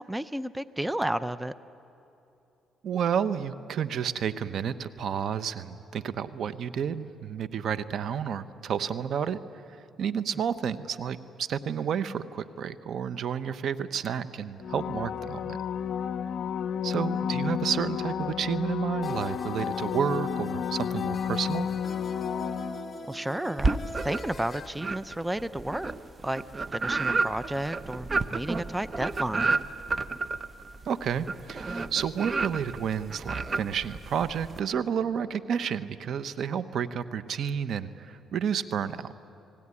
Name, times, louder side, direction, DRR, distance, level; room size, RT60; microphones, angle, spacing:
voice 1, 0.0-1.5 23.1-25.9 26.2-26.4 26.7-29.6, right 1 dB, 10° right, 14 dB, 0.6 m, -32 dB
voice 2, 2.8-9.4 10.0-15.6 16.8-21.7 30.8-39.1, right 8 dB, 65° right, 13 dB, 1.0 m, -31 dB
sound 1, 14.6-23.2 28.6-28.7, left 8 dB, 70° left, 0.6 m, -32 dB
sound 2, 19.0-24.7, left 3 dB, 35° left, 1.3 m, -41 dB
sound 3, 23.6-24.4 24.8-34.6, right 3 dB, 30° right, 1.0 m, -31 dB
30.0 x 19.5 x 9.8 m, 2.9 s
cardioid pair, 90°, 0 cm